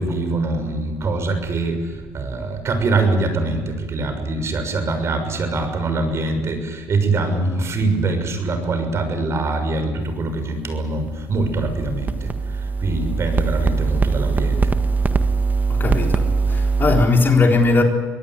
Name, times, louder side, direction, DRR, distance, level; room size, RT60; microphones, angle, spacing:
voice 1, 0.0-12.3 12.8-14.8, right 3 dB, 40° right, 6.3 m, -23 dB
sound 1, 11.1-17.0, right 4 dB, 25° right, 1.6 m, -21 dB
voice 2, 15.7-17.8, left 3 dB, 30° left, 4.0 m, -18 dB
24.5 x 18.5 x 9.7 m
cardioid pair, 100°, 7 cm